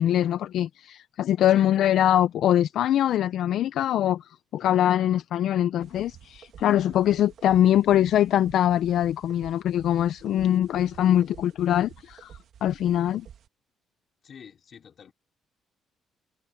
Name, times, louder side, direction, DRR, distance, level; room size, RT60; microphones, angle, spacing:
voice 1, 0.0-4.2 4.5-13.3, left 11 dB, 65° left, 0.4 m, -23 dB
sound 1, 5.8-13.5, right 9 dB, 55° right, 1.4 m, -50 dB
voice 2, 14.2-15.1, left 7 dB, 40° left, 3.8 m, -48 dB
cardioid pair, 165°, 0 cm